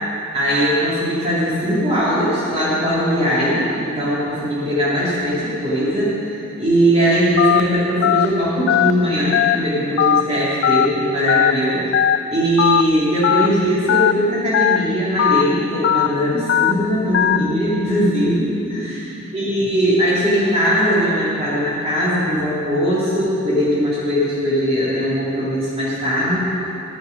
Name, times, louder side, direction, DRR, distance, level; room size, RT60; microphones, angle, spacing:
voice 1, 0.3-11.8 12.3-26.4, equal, 30° right, -9 dB, 2.8 m, -20 dB
Telephone, 7.4-7.6 8.0-8.3 8.7-8.9 9.3-9.6 10.0-10.2 10.6-10.9 11.3-11.5 11.9-12.2 12.6-12.8 13.2-13.5 13.9-14.1 14.5-14.8 15.2-15.4 15.8-16.1 16.5-16.7 17.1-17.4, left 9 dB, 60° left, 0.3 m, -16 dB
13.0 x 8.8 x 5.3 m, 2.9 s
head